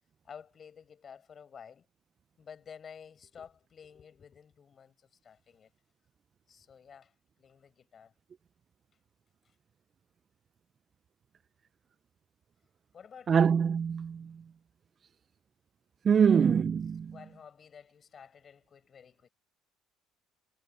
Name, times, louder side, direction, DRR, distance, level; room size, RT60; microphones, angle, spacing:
voice 1, 0.2-1.9 2.4-5.7 6.5-7.1 7.4-8.1 12.9-13.7 16.3-16.5 17.1-19.3, left 7 dB, 40° left, 4.8 m, -52 dB
voice 2, 13.3-14.3 16.1-17.2, right 7 dB, 40° right, 0.3 m, -24 dB
cardioid pair, 100°, 0 cm